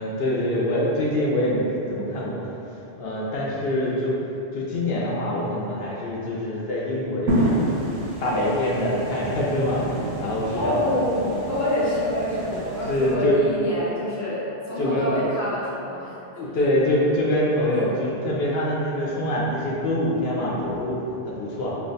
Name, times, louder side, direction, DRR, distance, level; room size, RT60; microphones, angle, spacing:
voice 1, 0.0-4.2 4.5-7.6 8.2-11.0 11.3-11.5 12.4-13.4 14.8-15.1 16.4-21.0 21.2-21.8, left 1 dB, 70° left, -5 dB, 0.8 m, -25 dB
sound 1, 7.3-13.1, right 1 dB, 85° right, 0.9 m, -29 dB
voice 2, 10.5-16.6, left 1 dB, 20° left, -9 dB, 0.6 m, -27 dB
2.8 x 2.2 x 3.9 m, 3.0 s
omnidirectional pair, 1.1 m